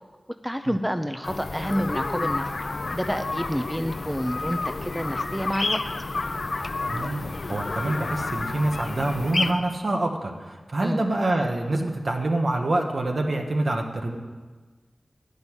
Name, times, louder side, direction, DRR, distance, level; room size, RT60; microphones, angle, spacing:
voice 1, 0.4-2.5 2.9-5.8 10.8-11.0, equal, 5° right, 7 dB, 0.5 m, -28 dB
sound 1, 1.2-9.5, left 3 dB, 65° left, 0.5 m, -30 dB
voice 2, 6.9-14.2, right 2 dB, 60° right, 3 dB, 1.2 m, -26 dB
10.5 x 5.4 x 8.0 m, 1.4 s
wide cardioid pair, 65°, 0 cm